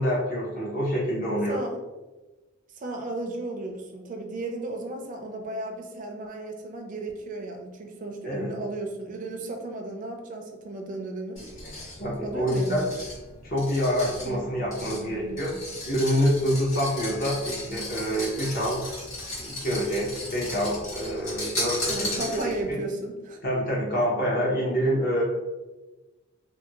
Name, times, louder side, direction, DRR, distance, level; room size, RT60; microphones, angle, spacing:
voice 1, 0.0-1.6 8.2-8.5 12.0-12.8 13.4-15.5 15.8-18.8 19.4-22.4 22.7-22.8 23.4-25.2, equal, 45° left, -5 dB, 0.7 m, -26 dB
voice 2, 2.8-11.5 12.2-12.9 14.2-15.6 21.9-23.4, right 2 dB, 40° right, 3 dB, 0.4 m, -34 dB
sound 1, 11.4-22.7, left 1 dB, 75° left, 1.3 m, -36 dB
2.6 x 2.6 x 2.8 m, 1.1 s
head